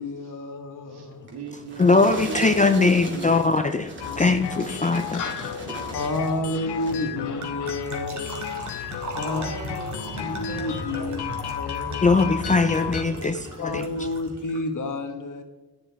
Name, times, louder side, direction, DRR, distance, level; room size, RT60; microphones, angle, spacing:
voice 1, 0.0-1.3 4.1-4.4 4.9-8.6 9.1-9.4 10.2-11.2 11.6-12.2 13.6-15.4, left 2 dB, 50° left, 1.3 m, -31 dB
voice 2, 0.9-3.5 9.2-11.3 13.0-13.6, right 4 dB, 75° right, 1.9 m, -38 dB
sound 1, 1.3-6.4 6.7-7.2 7.7-7.9, right 2 dB, 30° right, 2.1 m, -39 dB
voice 3, 1.8-5.2 12.0-13.9, left 3 dB, 20° left, 0.4 m, -21 dB
sound 2, 2.2-14.6, right 1 dB, 45° right, 2.0 m, -40 dB
sound 3, 4.0-13.0, left 9 dB, 85° left, 0.8 m, -34 dB
11.5 x 9.9 x 3.4 m
wide cardioid pair, 145°, 39 cm